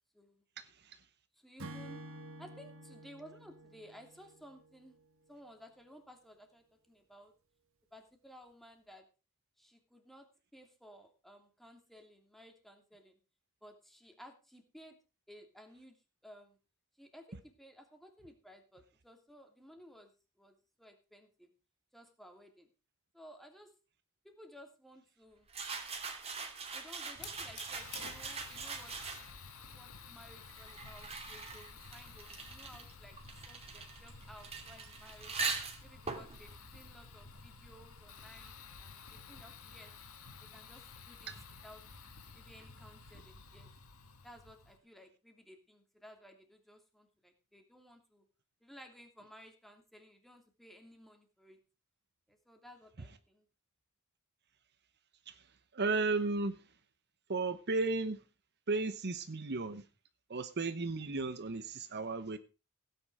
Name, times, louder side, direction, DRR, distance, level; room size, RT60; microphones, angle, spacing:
voice 1, 0.6-1.0 41.3-41.4 55.3-56.6 57.3-58.2 58.7-59.8 60.3-62.4, right 3 dB, 50° right, 0.9 m, -35 dB
voice 2, 1.4-2.0 2.4-5.0 5.3-7.3 7.9-9.0 9.6-10.3 10.5-13.2 13.6-15.0 15.3-16.0 16.2-16.6 17.0-20.1 20.4-21.5 21.9-22.7 23.1-23.7 24.2-25.5 26.7-28.9 29.7-33.2 33.4-35.3 35.8-39.9 40.4-41.3 41.6-41.8 42.3-43.7 44.2-48.3 48.6-51.6 52.3-53.5, equal, ahead, 2.9 m, -56 dB
Acoustic guitar / Strum, 1.6-5.0, right 1 dB, 65° right, 1.8 m, -50 dB
sound 1, 25.5-29.5 30.3-37.7, right 4 dB, 30° right, 2.9 m, -42 dB
Fire, 27.1-44.8, left 5 dB, 80° left, 2.1 m, -53 dB
16.5 x 9.6 x 4.9 m
head